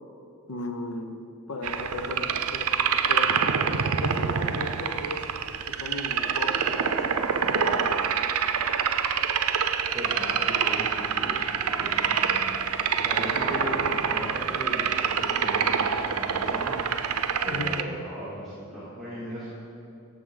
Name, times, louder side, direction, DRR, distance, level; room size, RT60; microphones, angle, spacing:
voice 1, 0.5-1.2 1.5-2.7 3.1-5.2 5.6-8.1 17.5-17.7, left 2 dB, 85° left, 6 dB, 1.0 m, -36 dB
sound 1, 1.6-17.8, right 7 dB, 75° right, 0.5 m, -26 dB
voice 2, 9.9-12.5 12.9-13.7 14.0-17.1 17.4-19.5, equal, ahead, -10 dB, 2.7 m, -37 dB
18.0 x 7.6 x 3.9 m, 2.7 s
head